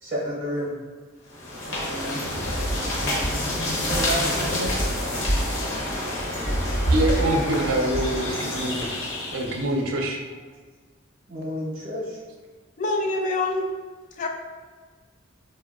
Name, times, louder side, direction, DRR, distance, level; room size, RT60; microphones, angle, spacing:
voice 1, 0.0-0.7 1.7-2.2 2.6-4.7 8.1-8.6 11.3-12.2, equal, 40° right, -6 dB, 0.6 m, -32 dB
sound 1, 1.3-9.7, equal, 70° left, 0.7 m, -26 dB
voice 2, 6.9-9.0 9.3-10.2, right 1 dB, 90° right, 1 dB, 0.5 m, -25 dB
voice 3, 12.8-13.8 14.2-14.3, left 2 dB, 40° left, 3 dB, 0.3 m, -25 dB
3.6 x 2.1 x 2.3 m, 1.4 s
head